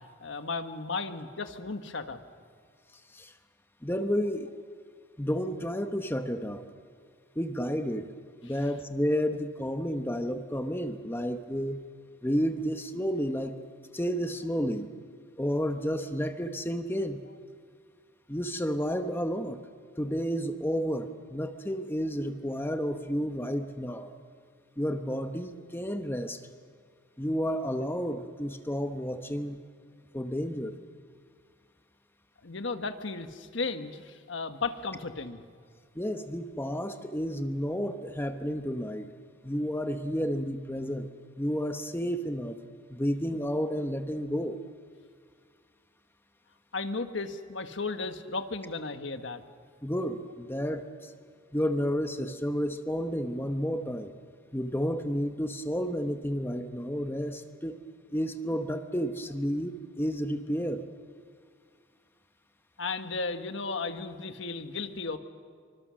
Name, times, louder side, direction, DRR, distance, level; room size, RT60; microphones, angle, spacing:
voice 1, 0.2-2.2 32.4-35.4 46.7-49.4 62.8-65.2, left 3 dB, 65° left, 8 dB, 1.5 m, -34 dB
voice 2, 3.8-4.5 5.2-6.6 7.4-8.1 8.4-11.8 12.2-13.5 13.9-14.9 15.4-17.2 18.3-19.6 20.0-24.1 24.8-26.4 27.2-29.6 30.1-30.8 35.9-39.1 39.4-41.1 41.4-42.6 42.9-44.6 49.8-51.1 51.5-54.1 54.5-57.8 58.1-60.8, equal, 10° left, 7 dB, 1.0 m, -31 dB
27.0 x 24.5 x 6.4 m, 2.1 s
head